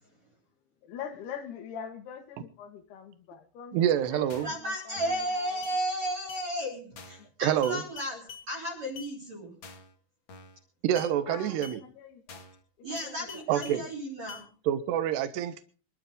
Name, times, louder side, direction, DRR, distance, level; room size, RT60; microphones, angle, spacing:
voice 1, 0.8-5.7 7.2-7.3 11.3-12.4 12.8-13.5, left 8 dB, 75° left, 8 dB, 3.7 m, -44 dB
voice 2, 3.7-4.5 7.4-7.8 10.8-11.8 13.5-13.9 14.7-15.6, right 10 dB, 85° right, 11 dB, 3.3 m, -27 dB
sound 1, 4.3-4.6 5.0-5.3 5.6-5.8 6.3-6.5 7.0-7.3 7.6-8.5 9.0-9.1 9.6-9.9 10.3-10.6 10.9-11.1 11.6-11.8 12.3-12.6 12.9-13.8 14.3-14.4, left 6 dB, 45° left, 1.7 m, -46 dB
voice 3, 4.4-9.5 12.8-14.5, equal, 40° right, 0 dB, 4.4 m, -34 dB
24.5 x 13.0 x 3.7 m, 0.37 s
omnidirectional pair, 4.7 m